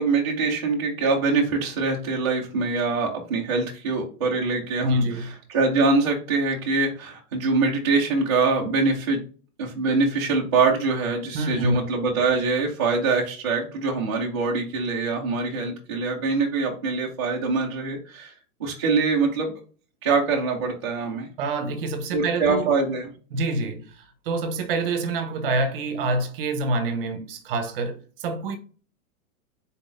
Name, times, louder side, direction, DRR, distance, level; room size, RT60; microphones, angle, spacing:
voice 1, 0.0-9.2 9.6-18.3 18.6-19.5 20.0-21.3 22.1-23.1, right 4 dB, 20° right, 0.4 m, -24 dB
voice 2, 4.8-5.3 11.3-11.8 21.4-22.7 23.3-28.6, right 2 dB, 40° right, 0.8 m, -27 dB
4.1 x 3.7 x 2.5 m
supercardioid pair, 165°, 43 cm